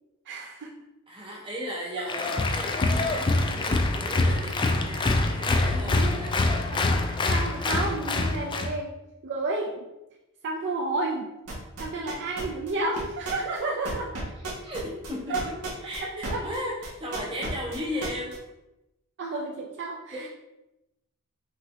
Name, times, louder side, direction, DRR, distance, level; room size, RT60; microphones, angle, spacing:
voice 1, 0.3-0.7 1.9-2.0 4.3-4.4 5.9-6.2 6.7-9.0 9.2-9.9 10.4-11.3 11.8-14.1 15.3-15.4 16.1-16.5 19.2-20.3, right 2 dB, 55° right, -1 dB, 0.5 m, -31 dB
voice 2, 1.1-6.4 14.6-15.5 15.8-18.4 20.1-20.3, equal, 25° right, -3 dB, 1.1 m, -36 dB
Applause, 2.1-8.7, left 2 dB, 20° left, 0.3 m, -25 dB
sound 1, 11.5-16.6 16.8-18.4, right 3 dB, 85° right, 1.3 m, -34 dB
5.5 x 2.8 x 3.0 m, 0.95 s
head